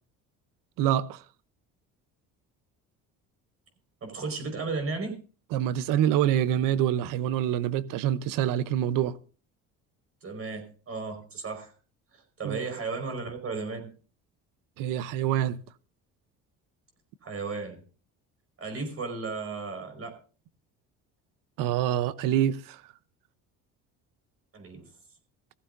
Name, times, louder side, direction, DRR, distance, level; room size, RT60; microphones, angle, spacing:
voice 1, 0.8-1.2 5.5-9.2 12.4-12.6 14.8-15.6 21.6-22.8, right 11 dB, 80° right, 0.9 m, -26 dB
voice 2, 4.0-5.2 10.2-11.7 12.1-13.9 17.2-17.8 18.6-20.1 24.5-24.8, right 4 dB, 45° right, 5.1 m, -34 dB
18.0 x 15.0 x 2.7 m
cardioid pair, 100°, 33 cm